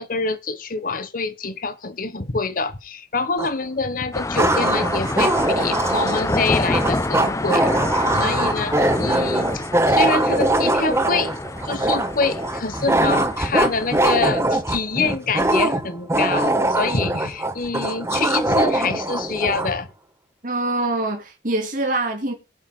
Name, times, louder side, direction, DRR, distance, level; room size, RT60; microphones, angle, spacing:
voice 1, 0.0-19.9, left 4 dB, 50° left, 1.1 m, -26 dB
sound 1, 3.4-3.5 4.3-19.7, right 1 dB, 15° right, 1.2 m, -22 dB
sound 2, 4.1-14.2, left 2 dB, 15° left, 0.6 m, -28 dB
voice 2, 20.4-22.3, right 2 dB, 45° right, 2.8 m, -24 dB
22.5 x 7.5 x 2.2 m
head